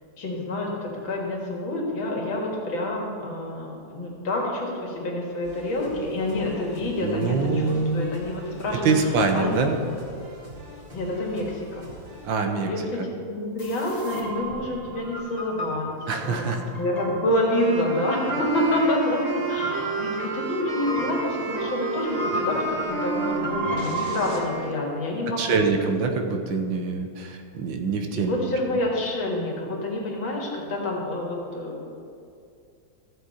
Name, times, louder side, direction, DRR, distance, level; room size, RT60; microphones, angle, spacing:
voice 1, 0.2-8.9 9.3-9.7 10.9-11.9 12.6-16.0 16.2-25.7 28.2-32.0, left 1 dB, 80° left, -2 dB, 2.6 m, -28 dB
sound 1, 5.4-12.3, right 1 dB, 30° right, 2.2 m, -44 dB
voice 2, 7.0-8.0 8.8-9.8 12.2-12.7 13.0-13.1 16.1-16.6 23.7-23.8 25.4-28.5, right 4 dB, 80° right, 5 dB, 1.6 m, -25 dB
sound 2, 13.6-24.4, right 2 dB, 25° left, 1.0 m, -34 dB
sound 3, 17.4-24.8, right 4 dB, 55° right, 0.4 m, -31 dB
14.0 x 7.4 x 4.3 m, 2.5 s
omnidirectional pair, 2.1 m